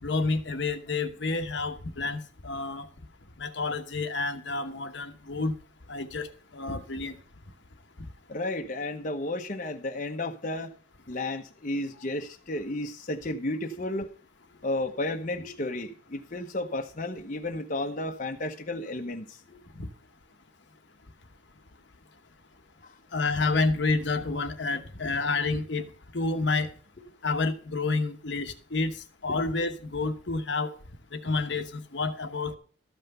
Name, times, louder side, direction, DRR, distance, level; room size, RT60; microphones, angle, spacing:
voice 1, 0.0-2.9 3.4-5.5 5.9-7.2 19.7-19.9 23.1-25.9 26.1-26.7 27.2-29.0 29.2-30.7 31.1-32.5, left 3 dB, 65° left, 1.1 m, -29 dB
voice 2, 8.3-10.7 11.1-14.1 14.6-19.6 22.8-22.9 29.3-29.4, left 2 dB, 40° left, 0.9 m, -33 dB
13.5 x 5.8 x 6.6 m
head